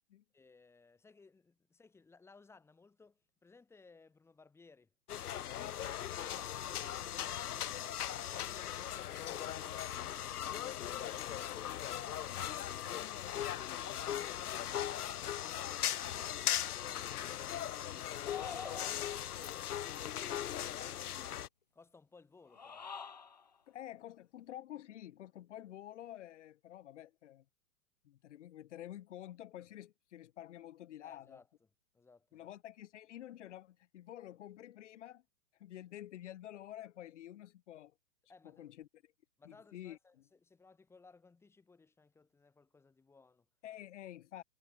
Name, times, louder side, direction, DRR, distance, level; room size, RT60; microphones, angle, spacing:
voice 1, 0.3-5.7 21.7-22.9 31.0-31.5 31.9-32.5 38.3-38.7 39.4-43.5, left 4 dB, 5° left, 6.9 m, -63 dB
sound 1, 5.1-21.5, left 11 dB, 80° left, 1.8 m, -39 dB
voice 2, 5.6-5.9 6.3-6.5 11.5-11.6 12.4-12.5 23.7-27.4 28.0-31.4 32.3-35.2 35.6-37.9 38.4-38.9 39.4-40.0 43.6-44.4, left 12 dB, 50° left, 4.8 m, -49 dB
sound 2, 18.3-19.4 22.5-23.5, left 6 dB, 30° left, 0.4 m, -46 dB
supercardioid pair, 175°, 45 cm